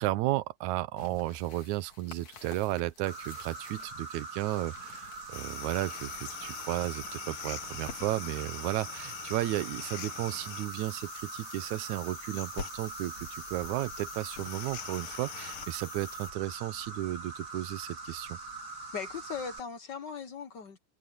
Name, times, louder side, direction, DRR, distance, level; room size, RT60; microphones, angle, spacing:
voice 1, 0.0-18.4, right 17 dB, 70° right, 1.9 m, -34 dB
sound 1, 1.0-8.3, left 6 dB, 50° left, 3.5 m, -52 dB
Insect, 3.1-19.6, right 3 dB, 30° right, 4.2 m, -43 dB
sound 2, 5.3-16.3, left 10 dB, 75° left, 3.1 m, -44 dB
voice 2, 18.9-20.8, left 6 dB, 90° left, 0.9 m, -39 dB
open air
omnidirectional pair, 4.0 m